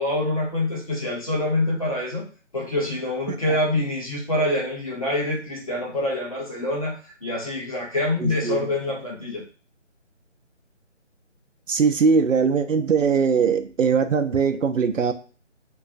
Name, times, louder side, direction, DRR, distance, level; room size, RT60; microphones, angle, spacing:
voice 1, 0.0-2.2 2.5-6.9 7.2-9.4, left 1 dB, 30° left, -4 dB, 0.9 m, -25 dB
voice 2, 8.2-8.6 11.7-15.1, right 5 dB, 80° right, 7 dB, 0.6 m, -21 dB
3.7 x 2.4 x 2.5 m, 0.38 s
figure-of-eight pair, 165°, 38 cm